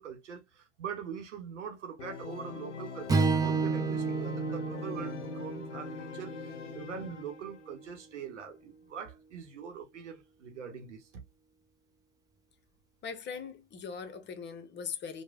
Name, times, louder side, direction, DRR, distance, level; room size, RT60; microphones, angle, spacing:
voice 1, 0.0-11.2, right 7 dB, 85° right, 0.8 m, -43 dB
Organ, 2.0-7.7, left 5 dB, 90° left, 0.7 m, -42 dB
Strum, 3.1-7.4, right 4 dB, 10° right, 0.4 m, -31 dB
voice 2, 13.0-15.2, left 6 dB, 30° left, 0.8 m, -40 dB
3.0 x 2.3 x 2.3 m
hypercardioid pair, 80°, 35 cm